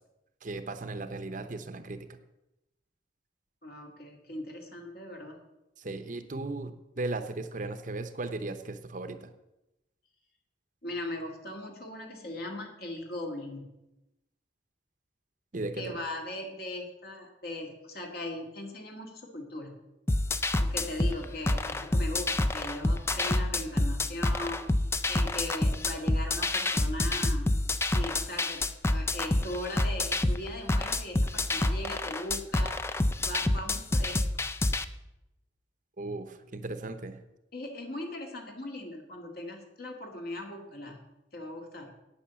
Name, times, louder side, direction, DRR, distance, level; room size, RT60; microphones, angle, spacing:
voice 1, 0.4-2.2 5.8-9.3 15.5-16.0 36.0-37.2, right 2 dB, 45° right, 9 dB, 0.8 m, -36 dB
voice 2, 3.6-5.4 10.8-13.8 15.8-19.8 20.6-24.7 25.1-27.5 27.9-32.8 33.2-34.4 37.5-41.0 41.3-41.9, left 1 dB, 55° left, 2 dB, 2.2 m, -39 dB
sound 1, 20.1-34.8, left 2 dB, 15° left, 0.4 m, -28 dB
9.1 x 8.7 x 7.0 m, 0.94 s
head